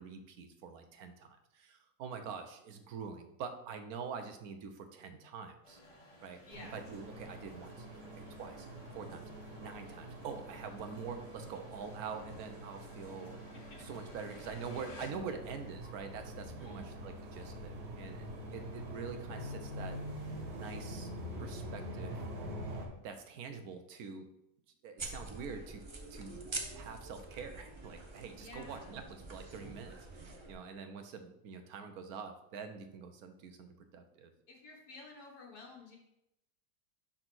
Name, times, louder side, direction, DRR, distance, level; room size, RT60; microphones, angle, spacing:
voice 1, 0.0-5.8 6.2-6.4 6.7-8.7 8.9-9.2 9.5-13.4 13.8-20.0 20.5-21.1 21.4-22.2 23.0-24.3 24.8-25.8 26.1-33.7 33.9-34.3, right 5 dB, 70° right, 7 dB, 1.2 m, -45 dB
sound 1, 5.6-17.9 18.2-21.6, equal, 25° left, 0.7 m, -58 dB
voice 2, 6.5-6.8 13.7-13.8 16.4-16.9 28.4-29.0 34.5-36.0, left 3 dB, 75° left, -2 dB, 1.7 m, -52 dB
sound 2, 6.5-22.9, equal, 85° right, 1.8 m, -45 dB
sound 3, 25.0-30.5, right 3 dB, 35° right, 0.4 m, -46 dB
5.9 x 3.9 x 6.1 m, 0.82 s
omnidirectional pair, 1.7 m